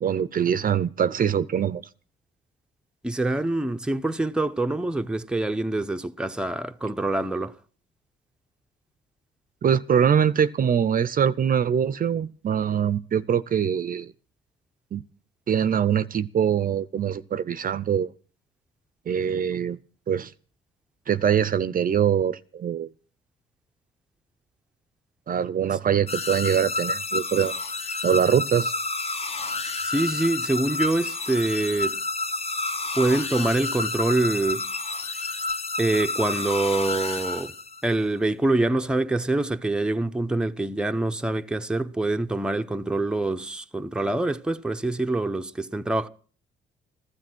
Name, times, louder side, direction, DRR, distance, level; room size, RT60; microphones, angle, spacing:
voice 1, 0.0-1.8 9.6-14.1 14.9-15.0 15.5-18.1 19.1-19.8 20.1-20.3 21.1-22.9 25.3-27.5 28.0-28.7, right 8 dB, 45° right, 0.6 m, -23 dB
voice 2, 3.0-7.5 29.8-32.0 32.9-34.7 35.8-37.5 37.8-46.1, right 2 dB, 5° right, 0.7 m, -25 dB
sound 1, 26.1-37.9, left 3 dB, 30° left, 1.1 m, -30 dB
15.0 x 13.0 x 6.2 m
cardioid pair, 90°, 20 cm